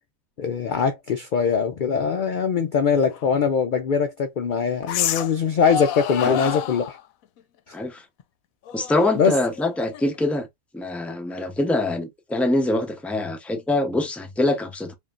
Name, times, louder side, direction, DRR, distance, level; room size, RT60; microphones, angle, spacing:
voice 1, 0.4-7.0 7.7-7.8 9.2-9.3, left 6 dB, 65° left, 0.5 m, -22 dB
sound 1, 3.1-3.2 4.8-5.4 5.6-7.0 8.7-10.2, left 11 dB, 85° left, 1.0 m, -29 dB
voice 2, 7.7-8.0 8.7-10.5 10.7-14.9, left 2 dB, ahead, 0.6 m, -24 dB
5.0 x 2.7 x 2.5 m
omnidirectional pair, 1.4 m